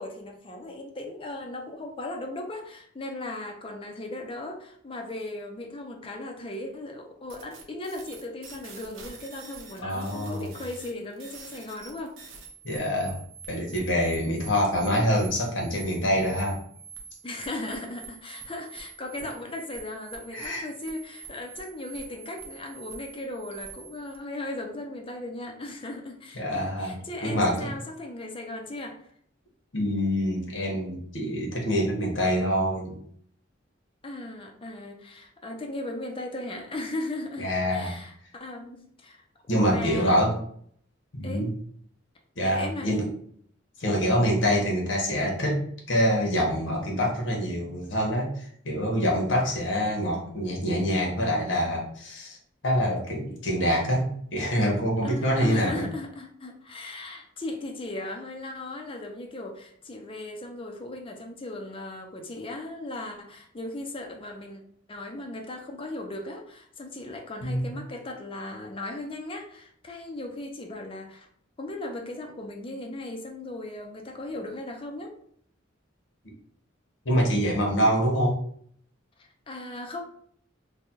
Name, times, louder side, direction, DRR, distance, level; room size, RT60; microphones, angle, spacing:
voice 1, 0.0-12.2 17.2-29.1 34.0-40.4 41.2-41.5 42.4-43.1 55.0-64.6 64.9-71.3 71.6-75.2 79.2-80.0, left 2 dB, 30° left, 2 dB, 0.6 m, -37 dB
sound 1, 7.3-24.2, right 6 dB, 85° right, 0.8 m, -46 dB
voice 2, 9.8-10.5 12.6-16.6 20.3-20.6 26.3-27.7 29.7-33.0 37.4-37.9 39.5-40.3 41.1-41.5 42.4-43.1 43.8-45.6 45.9-52.4 52.6-55.9 67.4-67.7 77.0-78.4, equal, 65° left, 0 dB, 1.1 m, -25 dB
3.3 x 2.2 x 4.2 m, 0.62 s
head